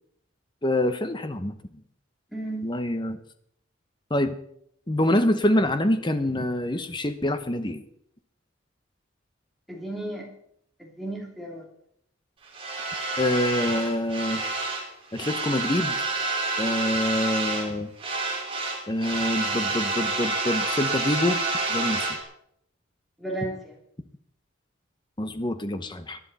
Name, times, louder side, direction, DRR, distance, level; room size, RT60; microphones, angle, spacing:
voice 1, 0.6-1.5 2.6-3.2 4.1-4.4 4.9-7.8 13.2-14.4 15.1-16.0 16.6-17.9 18.9-21.4 21.7-22.2 25.2-26.2, left 1 dB, 25° left, 10 dB, 0.9 m, -26 dB
voice 2, 2.3-2.7 9.7-10.3 10.8-11.7 23.2-23.8, right 1 dB, ahead, -2 dB, 2.9 m, -34 dB
sound 1, 12.5-14.9 15.1-17.7 18.0-22.2, right 3 dB, 25° right, 2.9 m, -28 dB
18.5 x 11.5 x 4.1 m, 0.71 s
head